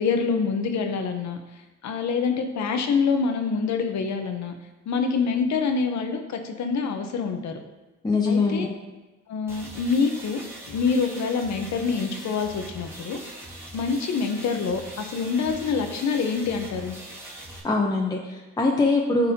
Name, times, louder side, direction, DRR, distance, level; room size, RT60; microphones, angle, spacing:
voice 1, 0.0-1.4 1.8-4.5 4.9-7.6 8.3-8.7 9.3-10.4 10.7-13.2 13.7-17.0, left 5 dB, 65° left, 5 dB, 0.9 m, -26 dB
voice 2, 8.0-8.7 17.6-19.3, left 3 dB, 15° left, 0 dB, 0.8 m, -23 dB
sound 1, 9.5-17.6, right 1 dB, 10° right, 1.7 m, -41 dB
12.0 x 4.1 x 2.8 m, 1.1 s
cardioid pair, 90°, 30 cm